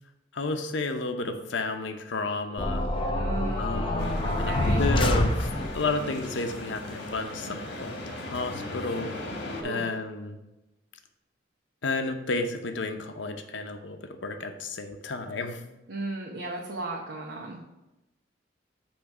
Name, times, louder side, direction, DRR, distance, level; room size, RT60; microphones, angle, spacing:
voice 1, 0.3-2.9 3.6-5.5 5.7-7.9 8.2-9.1 9.6-10.4 11.8-15.6, left 3 dB, 80° left, 6 dB, 0.7 m, -32 dB
sound 1, 2.6-5.9, left 1 dB, 30° left, 0.6 m, -26 dB
voice 2, 3.1-4.9 9.6-9.9 15.9-17.6, right 2 dB, 70° right, -2 dB, 1.0 m, -35 dB
sound 2, 4.0-9.6, left 1 dB, 65° left, 1.7 m, -38 dB
8.5 x 3.2 x 5.8 m, 0.98 s
head